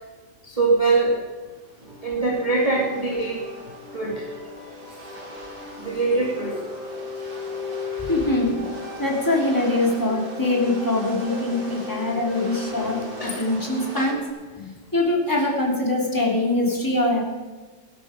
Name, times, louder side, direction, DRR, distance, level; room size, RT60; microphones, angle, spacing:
voice 1, 0.4-1.2 2.0-3.4 3.9-4.3 5.8-6.6 7.2-8.1 12.8-12.9 13.2-13.5 14.0-14.1, right 3 dB, 20° right, -2 dB, 1.9 m, -24 dB
sound 1, 1.5-14.1, right 1 dB, 65° right, 3.8 m, -42 dB
sound 2, 1.9-14.3, left 4 dB, 85° left, 5.1 m, -37 dB
voice 2, 8.0-8.6 9.0-14.2 14.6-17.2, left 2 dB, 10° left, -2 dB, 2.9 m, -23 dB
18.0 x 11.5 x 5.1 m, 1.4 s
omnidirectional pair, 2.0 m